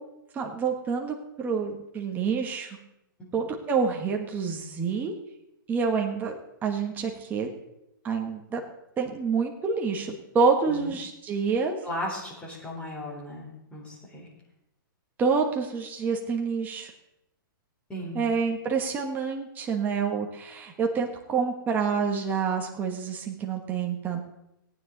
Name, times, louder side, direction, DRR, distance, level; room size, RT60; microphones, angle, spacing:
voice 1, 0.3-2.7 3.3-5.1 5.7-7.5 8.0-8.6 9.0-11.8 15.2-16.9 18.1-24.3, right 5 dB, 15° right, 2 dB, 1.3 m, -27 dB
voice 2, 11.8-14.3 17.9-18.2, left 1 dB, 10° left, -5 dB, 4.0 m, -36 dB
18.0 x 9.4 x 4.0 m, 0.84 s
hypercardioid pair, 155°, 12 cm